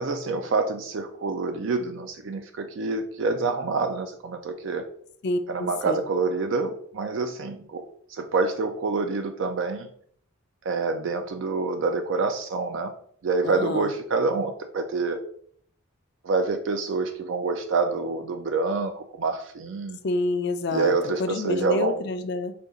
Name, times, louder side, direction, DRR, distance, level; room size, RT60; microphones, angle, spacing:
voice 1, 0.0-4.9 5.5-7.8 8.1-9.9 10.6-12.9 13.2-15.2 16.2-20.0 20.7-22.0, right 4 dB, 60° right, 6 dB, 0.3 m, -27 dB
voice 2, 5.2-6.0 13.4-13.9 20.0-20.9 21.2-22.5, left 2 dB, 50° left, 9 dB, 0.4 m, -28 dB
5.0 x 2.4 x 3.8 m, 0.62 s
head